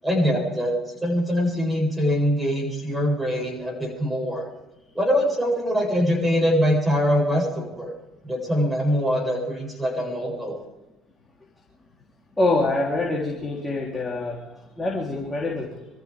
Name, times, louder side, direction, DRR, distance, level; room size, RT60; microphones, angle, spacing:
voice 1, 0.0-0.7 1.0-4.4 4.9-7.9 8.2-10.6, equal, 5° right, 0 dB, 7.9 m, -23 dB
voice 2, 12.4-15.9, left 2 dB, 15° left, -3 dB, 3.7 m, -25 dB
26.0 x 14.5 x 3.7 m, 1.0 s
cardioid pair, 110°, 0 cm